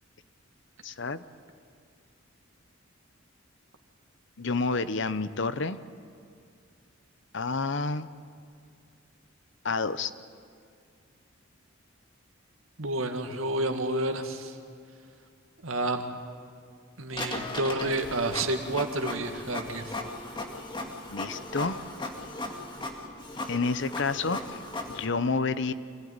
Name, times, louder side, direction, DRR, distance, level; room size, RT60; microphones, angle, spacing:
voice 1, 0.8-1.2 4.4-5.8 7.3-8.1 9.6-10.1 21.1-21.8 23.5-24.6 24.9-25.7, left 4 dB, 60° left, 13 dB, 0.8 m, -29 dB
voice 2, 12.8-14.6 15.6-16.0 17.0-20.0, right 2 dB, 80° right, 5 dB, 2.1 m, -30 dB
Printer, 17.1-25.0, left 2 dB, 25° left, 2.1 m, -37 dB
25.5 x 17.5 x 9.6 m, 2.3 s
head